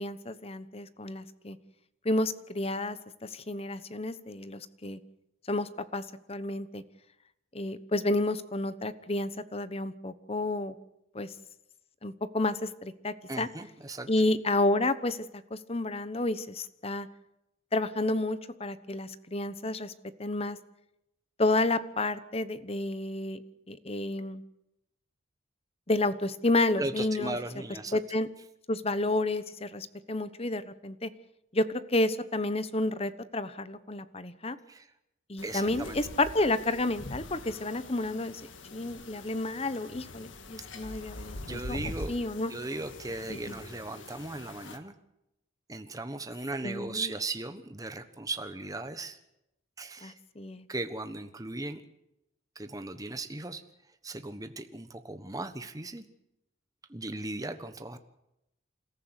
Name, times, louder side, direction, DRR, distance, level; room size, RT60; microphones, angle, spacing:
voice 1, 0.0-1.6 2.0-3.0 3.2-5.0 5.5-6.0 6.3-6.8 7.5-10.7 11.1-11.3 12.0-13.5 14.1-15.2 15.5-17.1 17.7-19.9 20.2-20.6 21.4-23.4 23.7-24.4 25.9-27.4 27.9-28.3 28.7-31.1 31.5-34.6 35.3-38.4 38.7-42.5 43.3-43.6 46.6-47.1 50.0-50.7, left 2 dB, 30° left, 14 dB, 1.0 m, -30 dB
voice 2, 13.3-14.1 26.8-28.0 34.7-34.9 35.4-36.0 41.4-42.2 42.5-44.9 45.7-49.2 49.8-50.1 50.7-51.8 52.5-53.6 54.0-56.0 56.9-58.0, right 2 dB, 20° right, 9 dB, 1.3 m, -37 dB
sound 1, 35.4-44.8, left 2 dB, 80° left, 1.8 m, -44 dB
28.0 x 14.5 x 8.2 m, 0.86 s
head